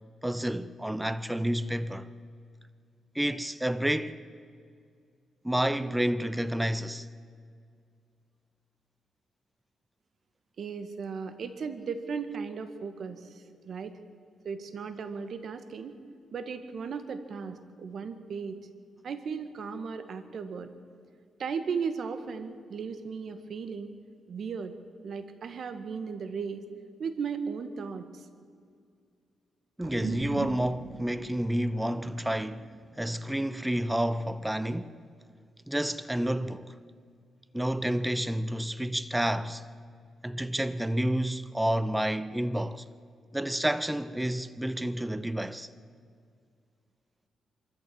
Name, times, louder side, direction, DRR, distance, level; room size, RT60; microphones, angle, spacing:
voice 1, 0.2-2.1 3.1-4.2 5.4-7.1 29.8-35.0 35.7-36.8 37.5-39.7 40.2-42.9 43.3-45.7, right 1 dB, 5° right, 0.7 m, -30 dB
voice 2, 10.6-13.9 14.4-16.0 16.3-18.6 19.0-20.7 21.4-23.9 24.3-24.7 25.0-26.6 27.0-28.2, right 5 dB, 60° right, 1.7 m, -36 dB
sound 1, 29.8-34.5, right 5 dB, 80° right, 3.0 m, -42 dB
24.5 x 14.0 x 8.7 m
cardioid pair, 100°, 0 cm